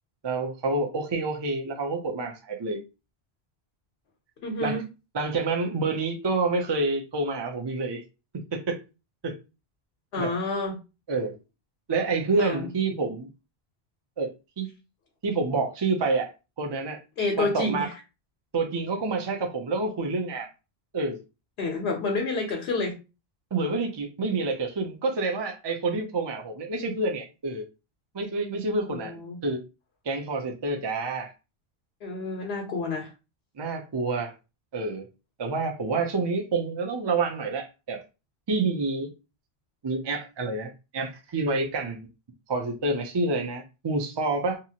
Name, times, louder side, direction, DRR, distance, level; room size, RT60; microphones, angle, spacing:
voice 1, 0.2-2.8 4.6-4.8 5.1-8.0 8.5-8.8 9.2-9.4 10.2-10.3 11.1-11.3 11.9-13.3 14.2-14.3 14.6-14.7 15.2-16.3 16.6-17.0 17.4-17.9 18.5-20.5 20.9-21.2 23.5-27.6 28.1-29.6 30.1-31.3 33.6-34.3 34.7-35.1 35.4-38.0 38.5-39.1 39.8-42.1 42.5-44.6, right 3 dB, 35° right, 0.4 m, -28 dB
voice 2, 4.4-4.8 10.1-10.8 12.4-12.6 17.2-17.9 21.6-23.0 28.9-29.4 32.0-33.1, left 3 dB, 80° left, 0.9 m, -29 dB
2.8 x 2.4 x 2.7 m
omnidirectional pair, 1.0 m